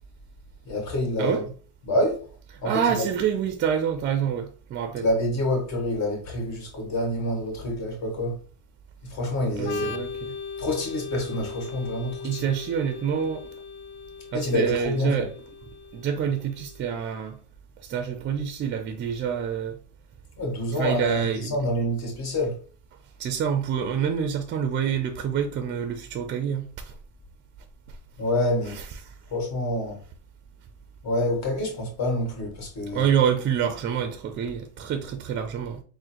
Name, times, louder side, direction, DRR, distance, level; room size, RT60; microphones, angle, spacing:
voice 1, 0.7-1.4 1.9-2.2 2.6-3.1 5.0-8.4 9.0-10.0 10.6-12.5 14.3-15.3 20.4-22.6 28.2-28.8 29.3-30.0 31.0-33.1, left 1 dB, 50° left, 1.8 m, -27 dB
voice 2, 2.6-5.1 9.5-10.4 12.2-13.5 14.3-15.3 15.9-17.4 17.8-19.8 20.7-21.5 23.2-26.9 28.7-29.1 32.9-35.8, right 8 dB, 30° right, 0.5 m, -27 dB
Organ, 9.6-17.1, left 6 dB, 30° left, 0.5 m, -39 dB
3.7 x 2.1 x 4.4 m
supercardioid pair, 115°, 36 cm